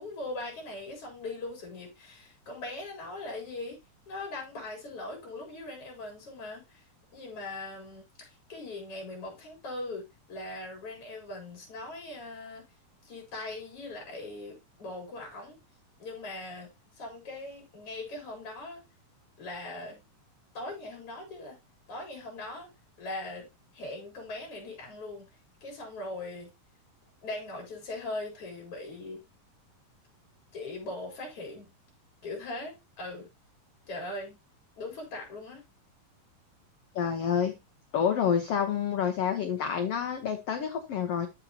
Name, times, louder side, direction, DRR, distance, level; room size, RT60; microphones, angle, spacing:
voice 1, 0.0-3.8 4.1-6.8 7.1-12.6 13.0-15.6 16.0-16.7 17.0-18.8 19.4-20.0 20.5-21.6 21.9-22.7 23.0-23.5 23.7-25.3 25.6-26.5 27.2-29.2 30.5-31.7 32.2-33.3 33.9-34.4 34.8-35.6, left 2 dB, 40° left, 4.9 m, -40 dB
voice 2, 36.9-37.5 37.9-41.3, left 8 dB, 80° left, 1.4 m, -28 dB
13.0 x 5.4 x 2.8 m
omnidirectional pair, 4.1 m